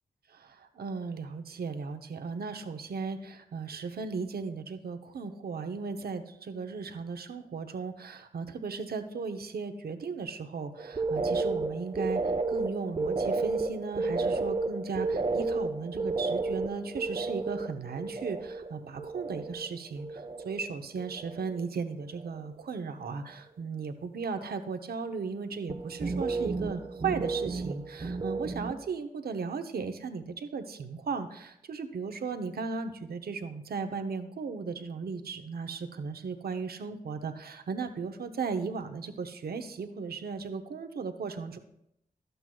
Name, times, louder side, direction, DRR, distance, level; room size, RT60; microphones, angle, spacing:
voice 1, 0.3-12.2 12.5-41.6, right 5 dB, 75° right, 8 dB, 0.7 m, -36 dB
sound 1, 10.8-19.7 20.0-20.7 21.0-21.7 22.0-22.4 25.7-28.9, right 3 dB, 35° right, 0.6 m, -32 dB
12.0 x 7.8 x 2.3 m, 0.78 s
cardioid pair, 45°, 16 cm